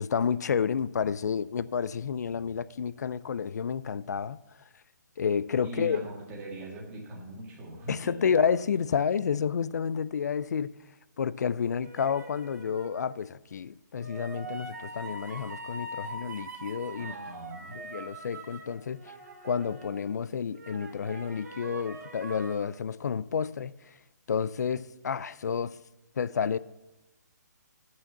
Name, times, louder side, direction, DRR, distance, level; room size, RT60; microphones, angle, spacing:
voice 1, 0.0-4.4 5.2-6.0 7.9-10.7 11.2-17.1 17.7-19.1 19.4-23.7 24.3-25.8 26.2-26.6, left 7 dB, 65° left, 0.4 m, -30 dB
voice 2, 5.6-8.2 17.0-17.8, right 1 dB, 15° right, 1.8 m, -41 dB
sound 1, 11.8-13.1 14.0-20.2 20.6-22.6, right 2 dB, 65° right, 2.5 m, -43 dB
8.5 x 6.3 x 7.0 m
hypercardioid pair, 165°, 10 cm